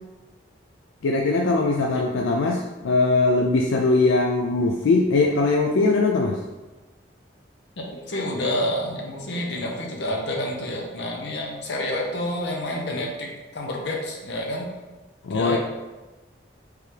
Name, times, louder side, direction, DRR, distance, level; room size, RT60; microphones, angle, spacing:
voice 1, 1.0-6.4 15.2-15.6, left 3 dB, 90° left, 1 dB, 0.4 m, -21 dB
voice 2, 7.8-14.7 15.3-15.6, left 1 dB, 70° left, 0 dB, 0.9 m, -29 dB
4.7 x 3.4 x 3.3 m, 1.1 s
head